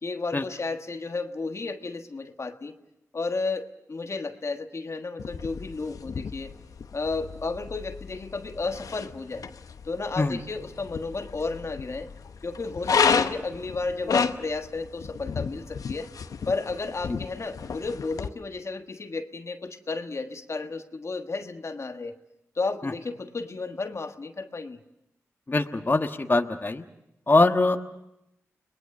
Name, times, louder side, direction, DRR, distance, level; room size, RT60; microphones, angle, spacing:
voice 1, 0.0-2.7 3.1-6.6 6.9-9.5 9.8-12.1 12.4-16.1 16.5-22.2 22.5-24.8, left 3 dB, 55° left, 6 dB, 1.4 m, -32 dB
sound 1, 5.2-18.3, left 6 dB, 75° left, 0.9 m, -32 dB
voice 2, 25.5-26.8 27.3-27.8, left 2 dB, 35° left, 5 dB, 1.4 m, -22 dB
30.0 x 20.5 x 6.6 m, 0.83 s
cardioid pair, 40°, 6 cm